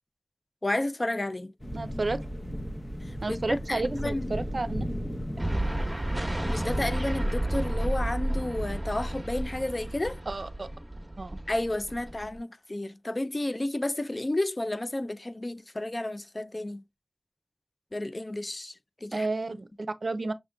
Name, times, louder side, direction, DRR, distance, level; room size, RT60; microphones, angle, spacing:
voice 1, 0.6-1.5 3.3-4.4 6.5-10.2 11.5-16.8 17.9-18.7 19.0-19.3, left 1 dB, 45° left, 0.4 m, -31 dB
sound 1, 1.6-7.3, equal, 30° left, 0.9 m, -36 dB
voice 2, 1.7-2.2 3.2-4.8 5.5-5.7 10.3-10.7 11.2-11.4 19.1-20.3, right 3 dB, 80° right, 0.4 m, -32 dB
sound 2, 5.4-12.4, right 1 dB, 20° right, 1.0 m, -31 dB
5.9 x 3.6 x 2.2 m
wide cardioid pair, 50°, 0 cm